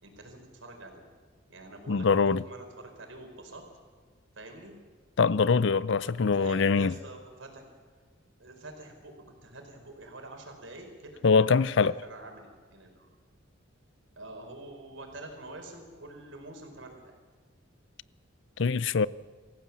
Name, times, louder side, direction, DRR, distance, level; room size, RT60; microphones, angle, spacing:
voice 1, 0.0-1.0 1.5-3.6 4.3-4.8 6.0-7.6 8.4-9.1 9.4-13.1 14.2-17.2, right 2 dB, 75° right, 4.7 m, -46 dB
voice 2, 1.9-2.4 5.2-6.9 11.2-11.9 18.6-19.1, left 5 dB, 65° left, 0.6 m, -23 dB
26.0 x 15.5 x 7.3 m
head